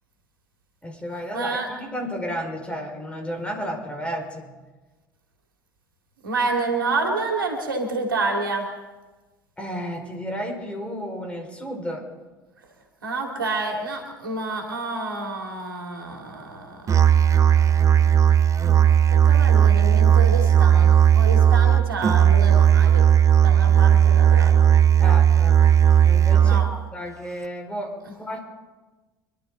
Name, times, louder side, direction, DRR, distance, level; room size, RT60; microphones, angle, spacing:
voice 1, 0.8-4.5 9.6-12.1 25.0-25.6 26.0-26.6 26.9-28.4, equal, 10° left, 1 dB, 4.6 m, -32 dB
voice 2, 1.3-1.7 6.2-8.7 13.0-16.9 17.2-18.1 18.6-23.0 23.4-24.6 26.4-26.7, right 3 dB, 80° right, 2 dB, 2.4 m, -29 dB
Musical instrument, 16.9-26.8, right 9 dB, 30° right, 0.6 m, -16 dB
26.0 x 12.0 x 3.8 m, 1.2 s
figure-of-eight pair, 70°, 11 cm